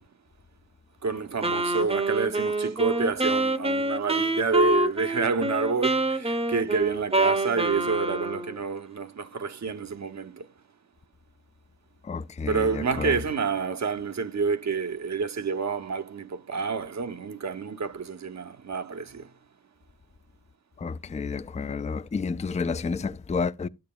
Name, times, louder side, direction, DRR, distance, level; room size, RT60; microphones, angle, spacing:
voice 1, 1.0-10.5 12.5-19.3, right 5 dB, 50° right, 0.8 m, -28 dB
Wind instrument woodwind instrument, 1.4-8.6, right 2 dB, 15° right, 0.8 m, -26 dB
voice 2, 12.0-13.1 20.8-23.7, left 4 dB, 20° left, 0.4 m, -30 dB
12.5 x 8.7 x 2.2 m
cardioid pair, 50°, 34 cm